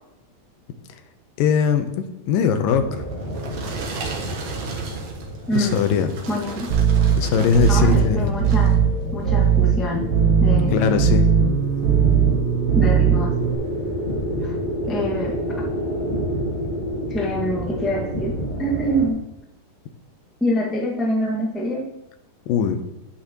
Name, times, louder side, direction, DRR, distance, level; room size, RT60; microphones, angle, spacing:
voice 1, 1.4-2.9 5.6-6.1 7.2-8.2 10.7-11.3 22.5-22.8, left 7 dB, 85° left, 8 dB, 2.5 m, -20 dB
sound 1, 2.7-19.1, equal, 25° left, 0.9 m, -29 dB
sound 2, 2.9-8.1 8.4-8.8 9.4-9.5, right 5 dB, 65° right, 2.5 m, -36 dB
voice 2, 5.5-5.8 6.3-6.8 7.7-8.8 9.1-10.0 10.4-10.7 12.7-13.4 14.4-14.6 14.9-15.4 17.1-19.2 20.4-21.9, equal, ahead, -3 dB, 0.5 m, -25 dB
sound 3, 6.7-13.5, right 7 dB, 80° right, 2.8 m, -19 dB
10.5 x 9.1 x 3.1 m, 0.92 s
omnidirectional pair, 3.9 m